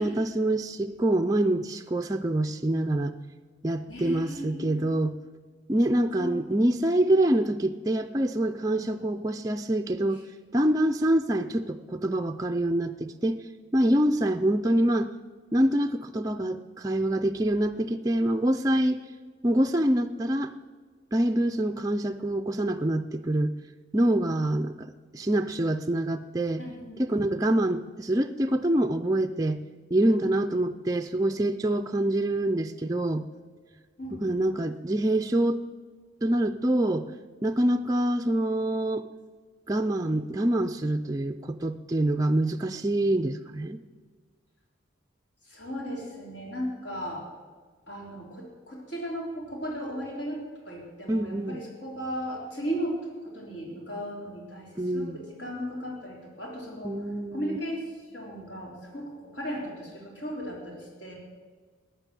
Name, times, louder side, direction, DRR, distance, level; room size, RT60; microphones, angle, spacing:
voice 1, 0.0-3.2 3.6-5.2 5.7-10.2 10.5-13.4 13.7-15.1 15.5-19.0 19.4-20.5 21.1-23.5 23.9-26.6 27.0-29.6 29.9-33.3 34.2-35.6 36.2-37.1 37.4-39.1 39.7-43.8 51.1-51.6 54.8-55.2 56.8-57.6, right 1 dB, 15° right, 5 dB, 0.4 m, -25 dB
voice 2, 3.9-4.8 6.2-6.6 8.7-9.0 26.6-27.2 34.0-34.5 45.5-47.2 47.9-50.4 50.7-57.0 57.3-57.8 58.1-61.1, equal, 65° left, -2 dB, 3.9 m, -36 dB
14.5 x 10.0 x 7.5 m, 1.5 s
head